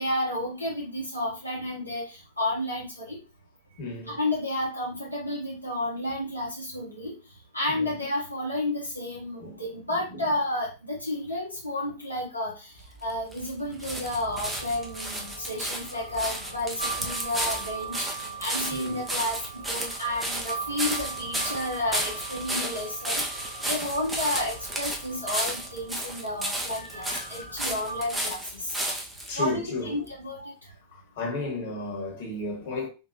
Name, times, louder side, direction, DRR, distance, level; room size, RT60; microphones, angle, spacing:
voice 1, 0.0-3.2 4.1-7.2 7.5-12.7 13.0-19.4 19.7-23.2 23.6-28.8 29.4-30.5, left 1 dB, 90° left, 0.9 m, -31 dB
voice 2, 3.8-4.2 7.7-7.9 9.4-9.6 10.1-10.2 18.7-19.0 23.8-23.9 29.3-30.0 30.9-32.9, left 2 dB, 50° left, 1.3 m, -33 dB
sound 1, 12.8-29.4 30.1-30.2, right 1 dB, 10° right, 0.8 m, -33 dB
sound 2, 14.2-28.1, right 5 dB, 80° right, 0.6 m, -41 dB
3.7 x 2.6 x 2.7 m
figure-of-eight pair, 90°, 0 cm